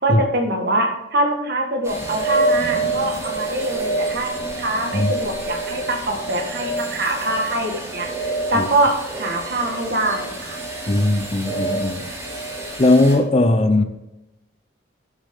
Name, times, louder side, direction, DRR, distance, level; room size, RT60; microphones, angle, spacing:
voice 1, 0.0-10.6, right 1 dB, 55° right, 3 dB, 1.7 m, -24 dB
sound 1, 1.8-13.2, right 2 dB, 15° right, 3.1 m, -27 dB
voice 2, 10.9-12.1 12.8-13.8, left 2 dB, 30° left, 9 dB, 0.6 m, -18 dB
11.5 x 7.4 x 3.7 m, 0.94 s
head